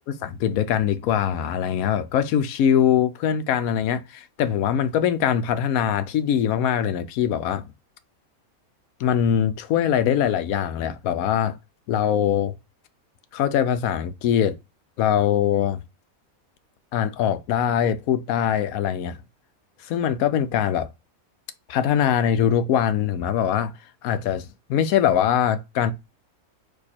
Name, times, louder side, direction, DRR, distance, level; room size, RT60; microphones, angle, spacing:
voice 1, 0.2-7.7 9.0-11.6 11.9-12.5 13.3-14.6 15.0-15.8 16.9-19.2 19.9-20.9 21.7-23.7 24.0-25.9, left 9 dB, 80° left, 1.0 m, -22 dB
4.6 x 2.7 x 4.2 m
omnidirectional pair, 1.5 m